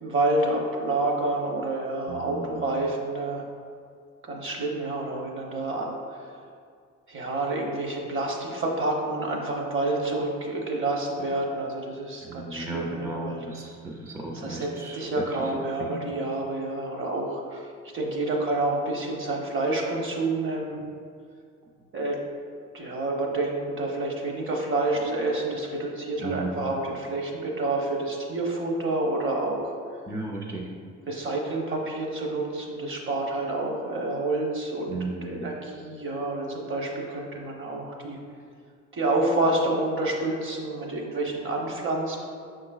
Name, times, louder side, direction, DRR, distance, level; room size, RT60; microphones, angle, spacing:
voice 1, 0.0-3.4 4.3-6.3 7.1-13.4 14.3-20.8 21.9-22.2 22.7-29.7 31.1-34.9 35.2-38.2 38.9-42.3, right 2 dB, 45° right, 0 dB, 0.9 m, -28 dB
voice 2, 2.1-2.6 12.2-16.1 26.2-26.6 30.1-30.7 34.9-35.4, right 2 dB, 10° right, -1 dB, 0.4 m, -35 dB
5.5 x 3.9 x 2.3 m, 2.2 s
cardioid pair, 90°, 30 cm